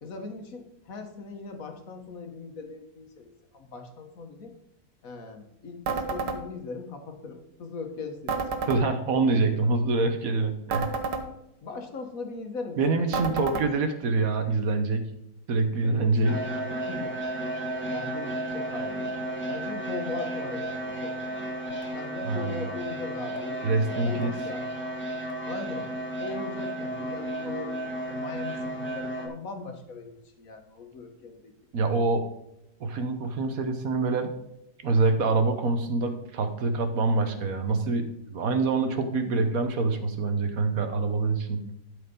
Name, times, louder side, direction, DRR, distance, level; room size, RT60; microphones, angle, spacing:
voice 1, 0.0-4.5 5.0-8.7 9.1-9.7 11.6-13.6 15.7-16.4 16.8-17.1 17.9-19.2 19.5-21.5 21.9-23.6 23.9-24.7 25.5-25.9 26.2-27.7 28.1-31.5, left 4 dB, 60° left, 5 dB, 1.7 m, -39 dB
sound 1, 5.9-6.4 8.3-8.8 10.7-11.2 13.1-13.7, right 4 dB, 90° right, 1.7 m, -29 dB
voice 2, 8.7-11.0 12.8-15.1 15.5-16.4 22.2-22.6 23.6-24.3 31.7-32.3 32.8-34.3 34.8-41.6, right 3 dB, 60° right, 8 dB, 1.4 m, -25 dB
sound 2, 16.2-29.3, right 1 dB, 10° left, 1.3 m, -33 dB
12.0 x 4.9 x 5.3 m, 0.83 s
omnidirectional pair, 1.7 m